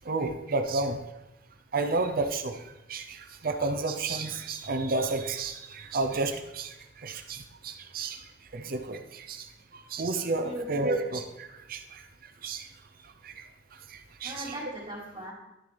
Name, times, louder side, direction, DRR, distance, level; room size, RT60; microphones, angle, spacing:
voice 1, 0.0-1.0 1.7-2.6 2.9-9.5 9.7-12.0 12.4-12.7 13.2-13.5 13.9-14.5, right 3 dB, 55° right, 7 dB, 0.7 m, -31 dB
voice 2, 10.2-11.0 14.2-15.3, equal, 30° right, -4 dB, 3.3 m, -39 dB
11.0 x 6.8 x 3.4 m, 0.93 s
head